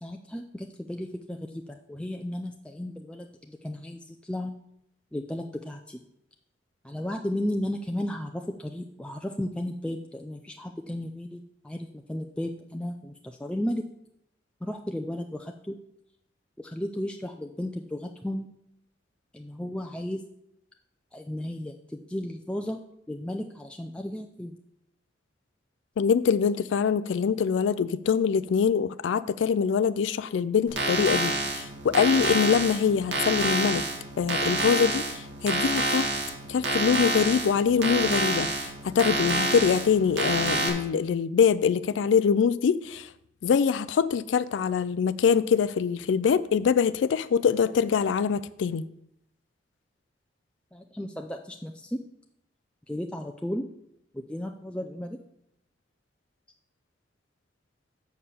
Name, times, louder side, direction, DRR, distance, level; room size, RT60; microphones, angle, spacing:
voice 1, 0.0-4.5 5.1-6.0 6.8-13.9 14.6-15.8 16.6-18.5 19.3-20.2 21.1-22.8 23.1-24.6 50.7-52.0 52.9-53.7 54.1-55.2, left 1 dB, 5° left, 0.4 m, -34 dB
voice 2, 26.0-33.8 34.2-36.1 36.5-43.1 43.4-48.8, left 6 dB, 90° left, 0.3 m, -24 dB
sound 1, 30.7-40.7, right 2 dB, 75° right, 2.0 m, -28 dB
6.6 x 5.6 x 6.8 m
head